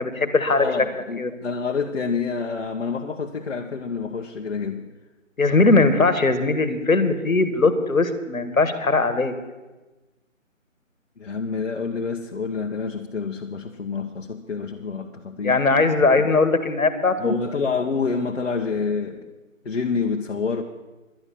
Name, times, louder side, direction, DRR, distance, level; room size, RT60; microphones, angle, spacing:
voice 1, 0.0-0.7 1.2-1.3 5.4-9.3 15.4-17.3, left 3 dB, 85° left, 10 dB, 1.5 m, -20 dB
voice 2, 0.6-4.9 5.8-5.9 11.2-15.6 17.2-19.3 19.6-20.6, left 5 dB, 55° left, 2 dB, 0.9 m, -27 dB
11.5 x 9.7 x 6.9 m, 1.2 s
figure-of-eight pair, 155°, 40 cm